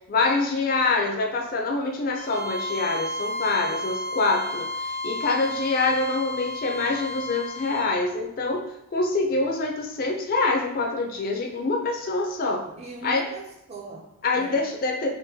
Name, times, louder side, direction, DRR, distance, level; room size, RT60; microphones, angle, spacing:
voice 1, 0.1-4.7 5.0-8.7 8.9-12.6 13.0-13.2 14.2-15.1, left 3 dB, 40° left, 1 dB, 0.4 m, -25 dB
Bowed string instrument, 2.1-7.9, left 2 dB, 50° right, 1.0 m, -32 dB
voice 2, 12.7-14.7, right 3 dB, 30° right, 0 dB, 0.4 m, -40 dB
3.7 x 2.1 x 2.7 m, 0.82 s
head